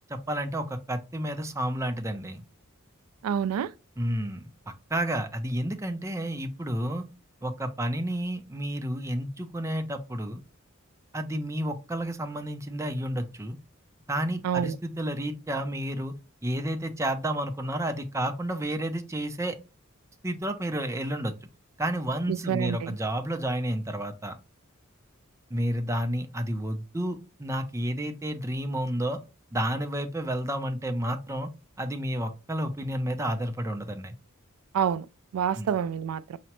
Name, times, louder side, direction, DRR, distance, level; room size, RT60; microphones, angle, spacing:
voice 1, 0.1-2.4 4.0-4.5 4.9-7.0 7.4-10.4 11.1-13.6 14.1-16.1 16.4-19.6 20.2-21.3 21.8-24.3 25.5-29.2 29.5-31.5 31.8-34.1 35.5-35.7, right 1 dB, 15° right, 0.5 m, -31 dB
voice 2, 3.2-3.7 14.4-14.8 22.3-23.0 34.7-35.1 35.3-36.4, right 8 dB, 85° right, 0.3 m, -27 dB
5.7 x 2.1 x 2.9 m
head